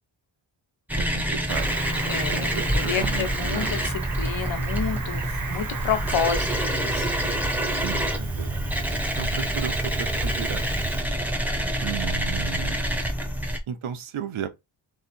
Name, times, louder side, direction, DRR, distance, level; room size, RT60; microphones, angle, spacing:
sound 1, 0.9-13.6, right 1 dB, 5° right, 0.6 m, -27 dB
voice 1, 1.0-3.7 7.8-8.6 9.2-10.6 11.8-12.8 13.7-14.5, right 9 dB, 85° right, 0.9 m, -34 dB
Cricket, 1.5-11.0, right 5 dB, 45° right, 0.7 m, -37 dB
voice 2, 2.1-7.1, left 7 dB, 75° left, 1.1 m, -30 dB
3.6 x 3.3 x 4.2 m
wide cardioid pair, 180°, 48 cm